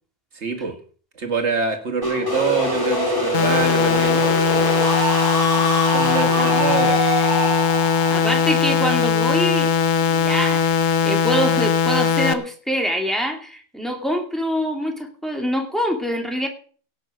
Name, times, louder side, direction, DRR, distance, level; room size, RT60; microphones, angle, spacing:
voice 1, 0.3-0.8 1.2-4.3 5.9-7.0, right 5 dB, 60° right, 5 dB, 2.3 m, -25 dB
sound 1, 2.0-9.7, right 1 dB, 15° left, 3.8 m, -24 dB
sound 2, 3.3-12.3, left 7 dB, 80° left, 1.3 m, -19 dB
voice 2, 8.1-9.8 10.1-16.5, equal, ahead, 2 dB, 2.6 m, -25 dB
17.0 x 6.8 x 6.2 m, 0.41 s
omnidirectional pair, 1.4 m